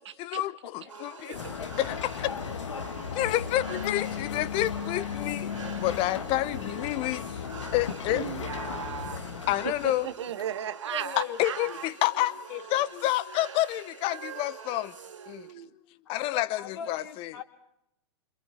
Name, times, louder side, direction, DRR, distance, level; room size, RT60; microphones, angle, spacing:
voice 1, 0.2-1.4 1.8-2.3 3.1-7.4 7.7-8.3 9.5-10.1 11.2-14.9 15.3-15.5 16.1-17.4, left 15 dB, 35° left, 0.9 m, -29 dB
voice 2, 0.8-1.7 10.8-11.9 16.0-17.4, left 6 dB, 60° left, 3.0 m, -42 dB
sound 1, 0.9-15.5, right 5 dB, 80° right, 2.0 m, -46 dB
sound 2, 1.3-10.1, left 7 dB, 75° left, 1.6 m, -36 dB
voice 3, 8.1-9.2 9.6-11.9 14.1-15.7, right 10 dB, 65° right, 1.4 m, -37 dB
28.5 x 26.5 x 4.4 m
figure-of-eight pair, 105°, 16 cm